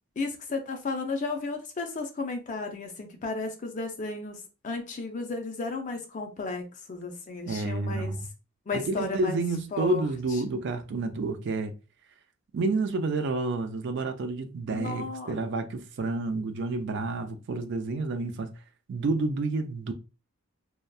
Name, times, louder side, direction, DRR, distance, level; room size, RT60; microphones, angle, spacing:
voice 1, 0.2-8.1 8.7-9.4 9.7-10.0 14.7-15.3, left 3 dB, 35° left, 0.4 m, -34 dB
voice 2, 7.5-8.2 8.7-11.7 12.5-18.5 18.9-19.9, right 3 dB, 50° right, 0.3 m, -29 dB
2.6 x 2.2 x 2.3 m
head